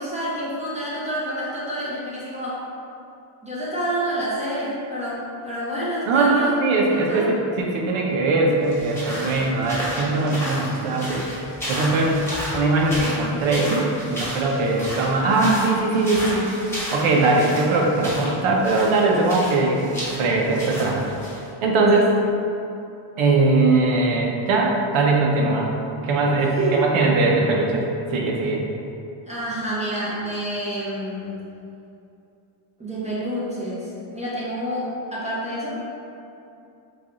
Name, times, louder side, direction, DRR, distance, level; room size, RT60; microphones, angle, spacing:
voice 1, 0.0-2.6 3.4-6.6 6.9-7.3 21.9-22.0 26.4-26.8 29.3-31.5 32.8-35.8, right 1 dB, 15° right, -9 dB, 0.7 m, -28 dB
voice 2, 6.1-12.2 12.5-16.6 16.9-19.8 20.1-21.0 21.6-22.1 23.2-25.7 26.0-28.6, right 3 dB, 80° right, -1 dB, 0.7 m, -20 dB
sound 1, 8.6-21.4, equal, 5° left, 1.1 m, -33 dB
3.3 x 2.3 x 3.7 m, 2.7 s
cardioid pair, 135°, 48 cm